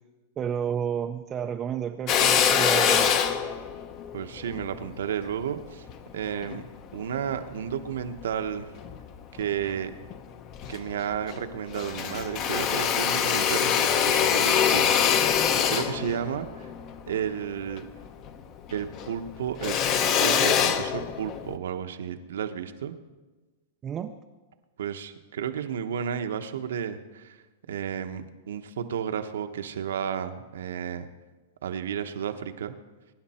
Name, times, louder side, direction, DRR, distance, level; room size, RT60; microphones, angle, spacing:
voice 1, 0.4-3.2 23.8-24.1, right 8 dB, 15° right, 6 dB, 0.4 m, -31 dB
Drill, 2.1-6.6 7.2-8.3 8.8-9.7 10.1-10.2 10.5-11.5 11.7-18.4 18.7-21.6, left 8 dB, 30° left, 0.8 m, -25 dB
voice 2, 4.1-5.9 6.1-6.6 6.9-8.7 9.3-9.9 10.7-15.3 15.7-16.7 17.1-17.8 18.7-19.8 20.2-23.0 24.8-27.4 27.7-31.1 31.6-32.8, right 8 dB, 80° right, 8 dB, 1.1 m, -32 dB
23.0 x 10.5 x 4.4 m, 1.2 s
supercardioid pair, 165°, 0 cm